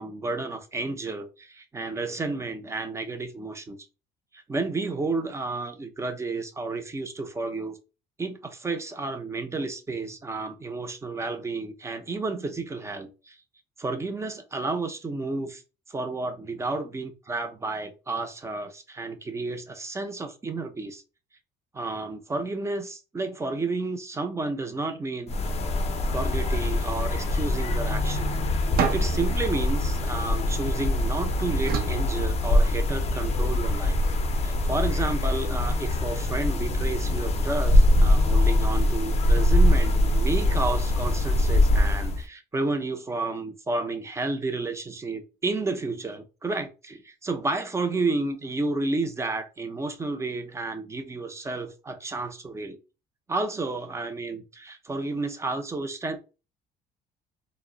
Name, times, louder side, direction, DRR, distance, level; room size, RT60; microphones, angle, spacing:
voice 1, 0.0-3.8 4.3-7.8 8.2-13.4 13.8-15.6 15.9-16.3 16.6-21.0 21.7-25.4 26.1-28.4 28.9-34.0 34.4-52.8 53.3-56.2, right 3 dB, 15° right, 0.5 m, -31 dB
sound 1, 25.3-42.2, left 1 dB, 40° left, 0.5 m, -23 dB
sound 2, 28.8-31.0 31.6-33.0, right 6 dB, 65° right, 0.6 m, -31 dB
2.1 x 2.0 x 3.6 m
cardioid pair, 110°, 17 cm